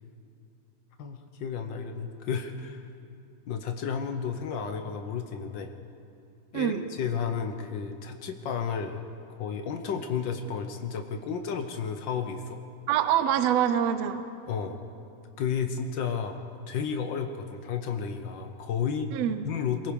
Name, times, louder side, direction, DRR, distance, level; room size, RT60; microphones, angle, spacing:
voice 1, 1.0-2.9 3.5-5.7 6.5-9.0 9.3-12.6 14.5-14.8 15.4-16.4 16.7-19.1 19.4-19.9, left 6 dB, 80° left, 5 dB, 1.0 m, -32 dB
voice 2, 12.9-14.3 19.1-19.5, right 10 dB, 70° right, 10 dB, 1.7 m, -25 dB
23.5 x 21.5 x 5.3 m, 2.6 s
omnidirectional pair, 3.5 m